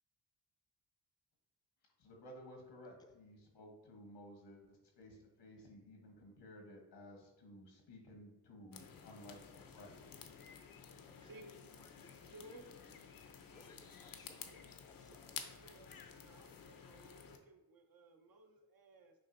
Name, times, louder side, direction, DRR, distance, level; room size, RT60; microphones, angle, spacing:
voice 1, 2.0-10.0, equal, 80° left, 1 dB, 1.1 m, -56 dB
voice 2, 2.8-3.2 11.1-11.4 11.8-12.1 12.4-12.9 13.5-15.4, left 3 dB, 10° left, 6 dB, 0.5 m, -65 dB
sound 1, 8.7-17.4, left 6 dB, 55° left, 0.6 m, -53 dB
voice 3, 11.2-11.5 12.3-12.7 15.1-15.2 15.6-15.9 16.2-19.1, right 1 dB, 60° right, 5 dB, 0.7 m, -58 dB
6.1 x 2.4 x 2.6 m, 0.98 s
cardioid pair, 55°, 41 cm